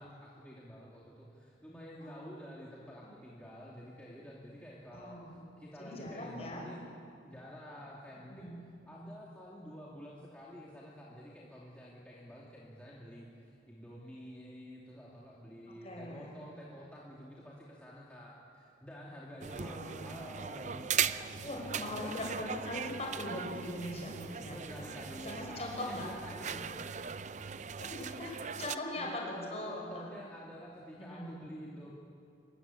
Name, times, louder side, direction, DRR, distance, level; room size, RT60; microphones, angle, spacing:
voice 1, 0.0-6.8 7.2-8.5 8.9-22.1 24.4-26.8 28.9-31.9, equal, 5° left, -6 dB, 2.6 m, -49 dB
voice 2, 4.9-5.4 5.8-6.7 8.3-8.6 15.7-16.4 19.5-20.1 21.4-24.9 25.2-26.1 27.7-30.1 31.0-31.3, left 1 dB, 35° left, -1 dB, 5.9 m, -41 dB
sound 1, 19.4-28.8, right 7 dB, 40° right, 0.5 m, -39 dB
25.5 x 22.5 x 8.5 m, 2.5 s
head